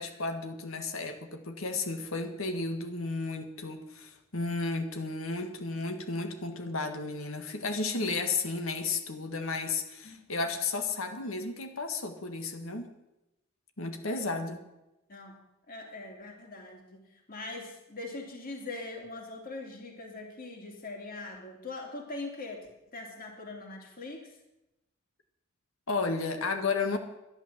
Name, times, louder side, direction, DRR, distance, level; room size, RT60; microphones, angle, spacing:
voice 1, 0.0-12.9 13.8-14.6 25.9-27.0, left 3 dB, 80° left, 6 dB, 1.7 m, -33 dB
voice 2, 10.0-10.5 14.0-14.2 15.1-17.0 17.3-24.3, left 2 dB, 45° left, 2 dB, 2.9 m, -42 dB
11.5 x 11.5 x 7.4 m, 0.92 s
head